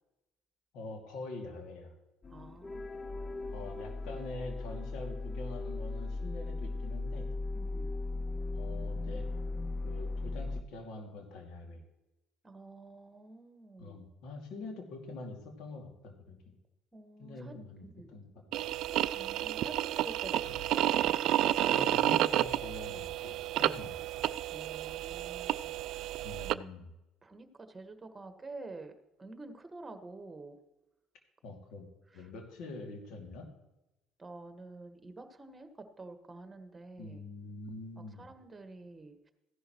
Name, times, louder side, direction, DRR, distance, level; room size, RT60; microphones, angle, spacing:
voice 1, 0.7-1.9 3.5-7.3 8.5-9.3 9.8-11.8 13.8-16.4 17.2-18.3 20.5-20.6 21.7-24.2 26.2-26.9 31.4-31.9 32.1-33.5 37.0-38.3, left 2 dB, 65° left, 3 dB, 2.4 m, -45 dB
sound 1, 2.2-10.6, left 2 dB, 30° left, 0.5 m, -37 dB
voice 2, 2.3-3.7 7.5-7.9 12.4-14.0 16.9-18.1 19.1-20.8 24.5-26.6 27.2-30.6 32.1-32.3 34.2-37.2 38.0-39.3, right 3 dB, 20° right, 7 dB, 1.5 m, -49 dB
sound 2, 18.5-26.5, right 13 dB, 65° right, 0.3 m, -31 dB
15.0 x 11.0 x 3.1 m, 0.97 s
hypercardioid pair, 65°, 0 cm